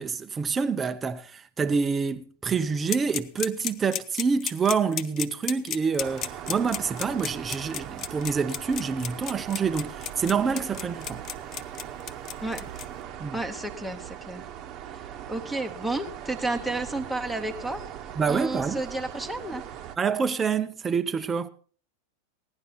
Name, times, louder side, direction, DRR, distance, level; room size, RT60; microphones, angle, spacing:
voice 1, 0.0-11.2 13.2-13.4 18.2-18.8 20.0-21.5, right 5 dB, 20° right, 0.6 m, -27 dB
sound 1, 2.9-12.8, left 10 dB, 35° left, 0.7 m, -33 dB
sound 2, 6.0-20.0, right 10 dB, 35° right, 1.0 m, -40 dB
voice 2, 13.3-14.4 14.9-15.0 15.3-17.8 18.3-19.6, right 2 dB, ahead, 1.0 m, -31 dB
16.5 x 10.5 x 4.1 m
figure-of-eight pair, 90°, 0 cm